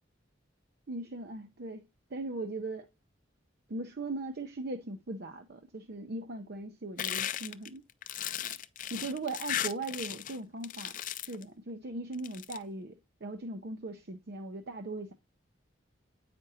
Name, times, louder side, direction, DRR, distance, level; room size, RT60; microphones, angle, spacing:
voice 1, 0.9-1.8 2.1-2.9 3.7-7.8 8.9-12.9 13.2-15.1, right 2 dB, 55° right, 0.7 m, -39 dB
sound 1, 7.0-10.4 10.6-11.4 12.1-12.6, left 11 dB, 45° left, 0.4 m, -36 dB
8.5 x 5.2 x 2.7 m
head